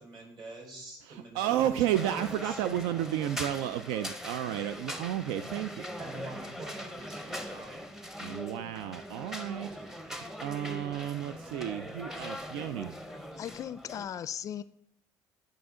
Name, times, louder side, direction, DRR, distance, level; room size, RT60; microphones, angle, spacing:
voice 1, 0.0-2.6 6.0-7.9, right 2 dB, 55° right, 0 dB, 3.9 m, -45 dB
voice 2, 1.1-5.9 8.2-9.7 10.1-12.9, right 11 dB, 85° right, 11 dB, 0.4 m, -32 dB
sound 1, 2.0-14.1, equal, 5° right, 0.7 m, -41 dB
voice 3, 13.1-14.6, left 9 dB, 40° left, 14 dB, 0.4 m, -38 dB
12.0 x 5.1 x 3.7 m, 0.73 s
cardioid pair, 120°, 9 cm